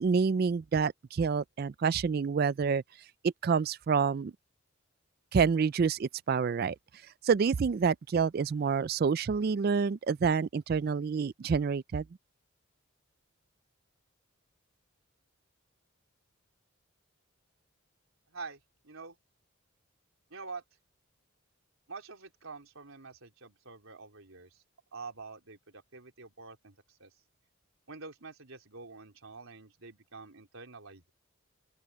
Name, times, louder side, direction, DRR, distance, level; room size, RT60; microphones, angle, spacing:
voice 1, 0.0-2.8 3.2-4.3 5.3-6.7 7.2-12.0, right 5 dB, 45° right, 0.3 m, -28 dB
voice 2, 18.3-19.2 20.3-20.6 21.9-24.6 24.9-27.1 27.9-31.1, right 4 dB, 75° right, 4.0 m, -47 dB
open air
head